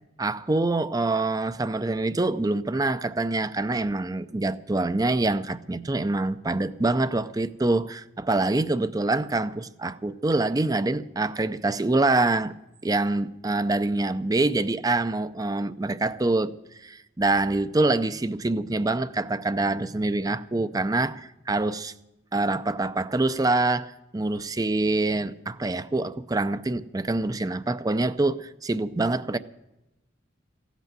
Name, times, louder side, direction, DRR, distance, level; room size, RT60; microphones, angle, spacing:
voice 1, 0.2-12.5 12.8-16.5 16.8-21.9 22.3-29.4, right 2 dB, 20° right, 0.5 m, -25 dB
16.5 x 8.2 x 8.9 m
head